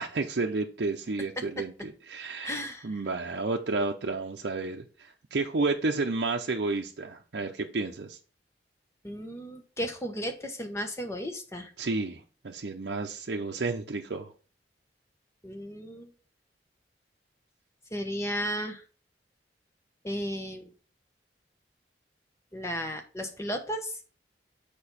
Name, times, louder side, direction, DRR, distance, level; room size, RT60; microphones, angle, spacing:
voice 1, 0.0-8.2 11.8-14.3, right 3 dB, 70° right, 1 dB, 0.6 m, -31 dB
voice 2, 2.4-3.0 9.0-11.7 15.4-16.1 17.9-18.8 20.0-20.7 22.5-24.0, equal, 15° left, 5 dB, 1.0 m, -34 dB
6.9 x 5.2 x 4.1 m, 0.37 s
head